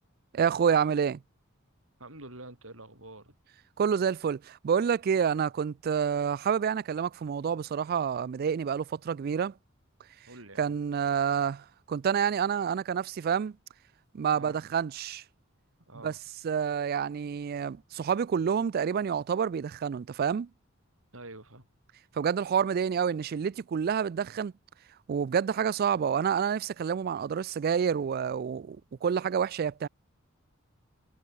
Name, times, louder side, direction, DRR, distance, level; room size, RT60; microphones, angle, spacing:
voice 1, 0.3-1.2 3.8-9.5 10.6-13.6 14.1-15.2 16.0-16.1 16.4-20.5 22.2-24.5 25.1-29.9, right 7 dB, 45° right, 0.3 m, -28 dB
voice 2, 2.0-3.4 10.3-10.8 14.3-14.6 15.9-16.2 21.1-21.7, right 2 dB, 75° right, 7.8 m, -47 dB
head